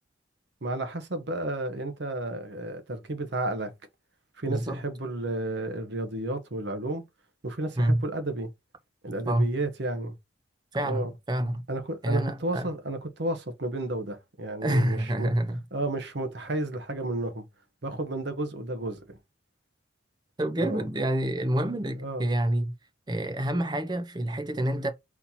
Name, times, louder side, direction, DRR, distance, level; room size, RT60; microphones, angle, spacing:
voice 1, 0.6-3.7 4.4-7.0 7.4-8.5 9.0-10.2 10.8-11.1 11.7-15.3 15.7-17.4 17.8-19.2 20.6-20.8 22.0-22.3, right 2 dB, 65° right, 0.9 m, -32 dB
voice 2, 4.5-4.8 7.8-8.0 9.3-9.5 10.7-11.6 12.0-12.7 14.6-15.6 20.4-22.7 23.1-24.9, right 1 dB, 20° right, 0.6 m, -27 dB
4.2 x 2.8 x 4.2 m
head